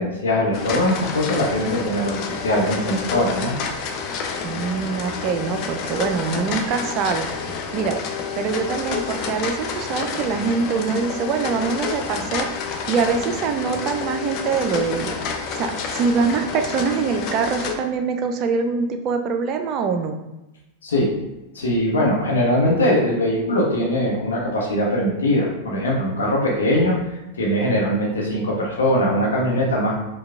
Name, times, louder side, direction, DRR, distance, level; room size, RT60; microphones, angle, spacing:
voice 1, 0.0-3.5 20.8-21.1 21.5-27.0 27.3-29.9, left 1 dB, 70° left, -3 dB, 0.8 m, -21 dB
sound 1, 0.5-17.7, left 5 dB, 40° left, 0.5 m, -29 dB
voice 2, 4.4-7.3 7.7-8.0 8.3-15.2 15.5-20.2, right 5 dB, 35° right, 6 dB, 0.4 m, -24 dB
4.5 x 2.3 x 3.5 m, 0.98 s
figure-of-eight pair, 90°, 0 cm